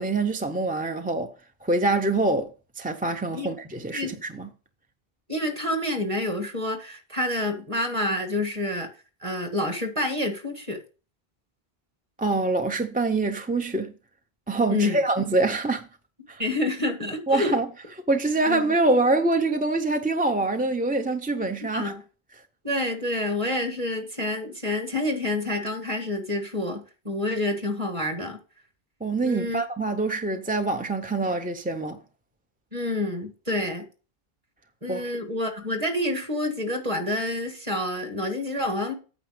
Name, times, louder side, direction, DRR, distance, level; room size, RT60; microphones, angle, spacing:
voice 1, 0.0-1.3 1.6-2.5 2.8-4.5 12.2-13.9 14.5-15.9 16.3-16.4 17.3-17.7 18.1-21.9 29.0-32.0 34.9-35.0, right 2 dB, 10° right, 0.5 m, -25 dB
voice 2, 5.3-8.9 9.2-10.8 14.7-15.0 16.4-17.6 18.5-18.7 21.7-22.0 22.6-28.4 29.2-29.6 32.7-33.8 34.8-38.9, left 1 dB, 30° right, 1.9 m, -28 dB
9.0 x 6.0 x 5.0 m
omnidirectional pair, 1.0 m